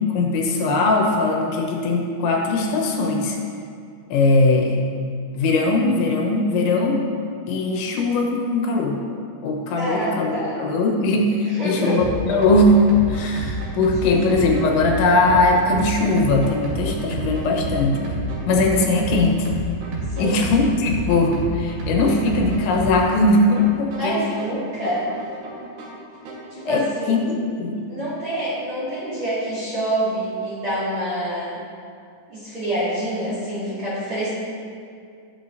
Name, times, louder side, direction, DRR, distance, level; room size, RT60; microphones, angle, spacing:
voice 1, 0.0-3.4 4.1-4.8 5.3-7.0 7.5-9.0 9.4-12.8 13.1-18.1 18.5-19.5 20.2-24.2 26.7-27.8, left 2 dB, 85° left, 1 dB, 3.4 m, -20 dB
voice 2, 9.8-10.6 11.6-12.1 14.0-14.2 20.1-20.4 23.9-25.1 25.6-25.7 26.5-27.2 27.9-31.6 32.3-34.3, right 1 dB, 40° right, -11 dB, 2.2 m, -26 dB
sound 1, 12.0-27.0, right 1 dB, 70° right, 3.3 m, -30 dB
17.0 x 6.4 x 2.7 m, 2.3 s
omnidirectional pair, 5.1 m